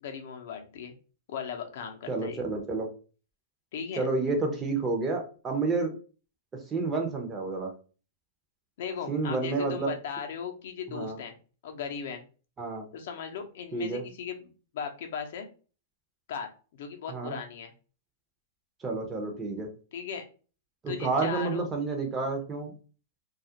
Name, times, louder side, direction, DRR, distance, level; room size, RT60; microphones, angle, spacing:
voice 1, 0.0-0.9 1.3-2.4 3.7-4.1 8.8-11.3 11.6-12.2 12.9-15.5 16.3-16.5 16.8-17.7 19.9-20.2 20.9-21.7, left 7 dB, 65° left, 4 dB, 0.5 m, -37 dB
voice 2, 2.1-2.9 3.9-5.9 6.7-7.7 9.1-9.9 10.9-11.2 12.6-12.9 13.7-14.0 17.1-17.4 18.8-19.7 20.8-22.7, right 3 dB, 15° right, 2 dB, 0.5 m, -30 dB
2.3 x 2.0 x 2.7 m, 0.36 s
hypercardioid pair, 150°, 0 cm